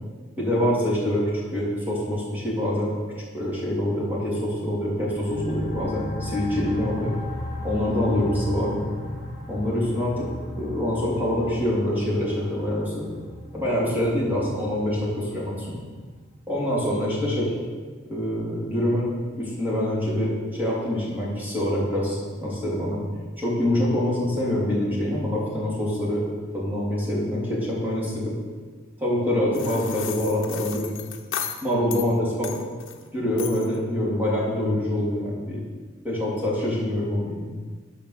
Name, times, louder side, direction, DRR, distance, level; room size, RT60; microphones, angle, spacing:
voice 1, 0.4-2.9 3.3-7.1 7.6-8.9 9.5-10.3 10.6-13.1 13.5-15.8 16.5-17.5 18.1-19.1 19.4-23.0 23.4-26.2 26.5-28.3 29.0-30.8 31.6-32.6 33.1-35.6 36.0-37.4, left 1 dB, 10° right, -7 dB, 3.3 m, -25 dB
sound 1, 5.1-16.4, left 1 dB, 50° left, 2.1 m, -36 dB
sound 2, 29.5-32.1 32.4-33.0 33.4-33.8, left 9 dB, 65° left, 0.9 m, -35 dB
11.0 x 5.5 x 6.7 m, 1.5 s
head